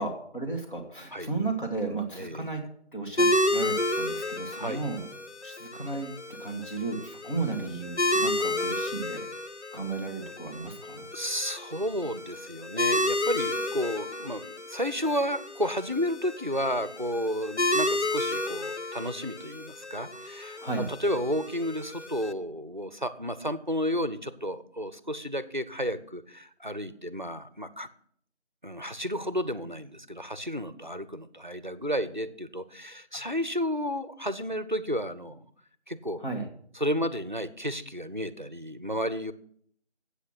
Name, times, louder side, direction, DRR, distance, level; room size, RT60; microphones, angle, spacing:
voice 1, 0.0-2.6 2.9-5.1 5.4-6.1 6.4-9.3 9.7-11.1 20.6-20.9 36.2-36.5, right 3 dB, 45° left, 2 dB, 2.0 m, -34 dB
voice 2, 2.1-2.5 4.6-4.8 7.5-7.8 11.1-27.9 28.6-35.5 35.9-36.2 36.8-39.3, equal, 45° right, 15 dB, 0.6 m, -32 dB
sound 1, 3.2-22.3, left 1 dB, 80° left, 1.1 m, -31 dB
8.2 x 8.1 x 6.3 m, 0.63 s
figure-of-eight pair, 180°, 34 cm